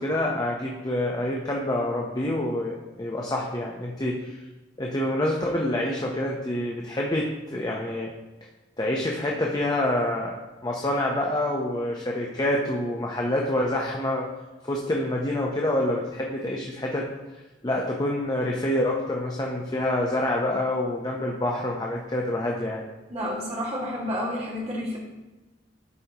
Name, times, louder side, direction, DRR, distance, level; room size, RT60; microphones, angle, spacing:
voice 1, 0.0-4.4 4.8-8.1 8.8-10.4 10.6-14.3 14.6-17.1 17.6-22.8, left 1 dB, 20° left, -1 dB, 0.7 m, -27 dB
voice 2, 23.1-25.0, equal, 35° right, -4 dB, 2.0 m, -30 dB
12.5 x 5.2 x 2.9 m, 1.1 s
head